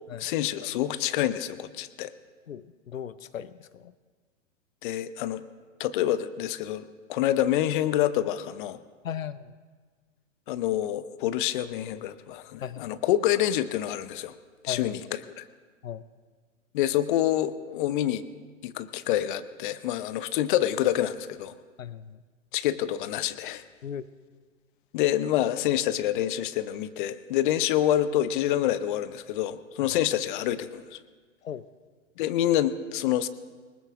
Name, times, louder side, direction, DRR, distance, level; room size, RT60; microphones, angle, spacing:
voice 1, 0.2-2.1 4.8-5.4 5.8-8.8 10.5-14.3 14.6-15.0 15.4-15.5 16.7-18.2 18.6-21.5 22.5-23.6 24.9-31.0 32.2-33.3, left 12 dB, 40° left, 14 dB, 0.7 m, -27 dB
voice 2, 2.5-3.9 9.0-9.5 12.6-12.9 14.7-15.0 15.8-16.0 21.8-22.2 23.8-24.0 31.4-31.6, left 8 dB, 85° left, 16 dB, 0.6 m, -37 dB
19.0 x 14.5 x 3.6 m, 1.5 s
figure-of-eight pair, 110°, 39 cm